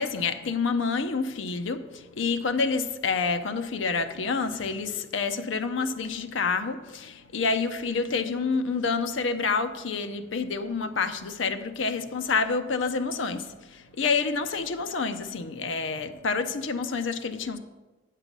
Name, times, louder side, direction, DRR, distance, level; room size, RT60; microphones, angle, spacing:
voice 1, 0.0-17.6, left 4 dB, 75° left, 0.6 m, -28 dB
8.2 x 7.4 x 5.3 m
head